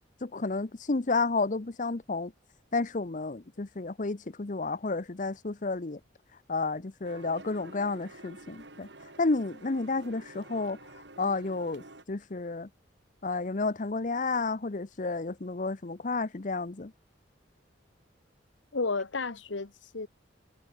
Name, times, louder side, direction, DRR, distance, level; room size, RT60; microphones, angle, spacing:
voice 1, 0.2-2.3 2.7-6.0 6.5-8.9 9.2-12.7 13.2-16.9, left 3 dB, 45° left, 0.8 m, -31 dB
sound 1, 7.0-12.0, right 2 dB, 70° right, 5.0 m, -49 dB
voice 2, 18.7-20.1, left 3 dB, 80° left, 1.2 m, -32 dB
head